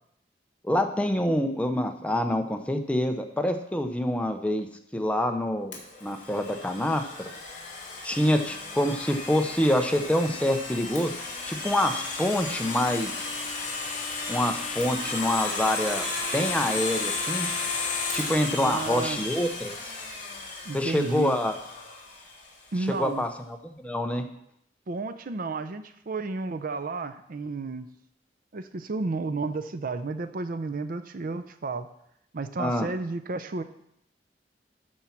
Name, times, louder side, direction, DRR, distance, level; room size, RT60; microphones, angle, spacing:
voice 1, 0.6-4.7 4.9-7.3 8.0-11.1 11.5-13.3 14.3-16.1 16.3-17.5 18.1-19.7 20.7-21.6 23.0-24.2 32.6-32.9, left 1 dB, 5° left, 5 dB, 0.7 m, -26 dB
Domestic sounds home sounds, 5.7-22.5, left 3 dB, 45° left, 2.4 m, -34 dB
voice 2, 18.6-19.2 20.6-21.4 22.7-23.3 24.9-27.9 28.5-31.9 32.3-33.6, right 3 dB, 55° right, 10 dB, 0.6 m, -32 dB
13.0 x 4.5 x 5.9 m, 0.76 s
head